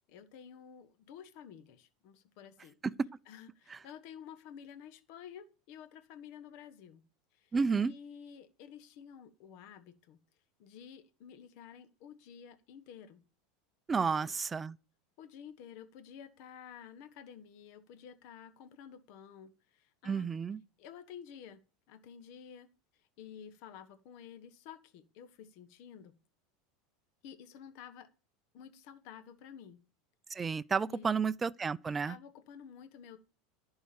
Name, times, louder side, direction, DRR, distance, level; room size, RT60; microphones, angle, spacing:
voice 1, 0.1-2.8 3.3-7.0 7.3-7.5 7.8-10.2 10.6-13.2 14.0-14.3 15.2-20.3 20.8-21.6 21.9-22.7 22.9-26.2 27.2-28.1 28.5-29.8 30.8-31.2 32.1-33.2, left 8 dB, 60° left, 1.4 m, -51 dB
voice 2, 2.8-3.2 3.7-3.8 7.5-7.9 13.9-14.8 20.0-20.6 30.3-32.2, right 5 dB, 20° right, 0.4 m, -31 dB
11.0 x 4.8 x 7.0 m
hypercardioid pair, 95°, 0 cm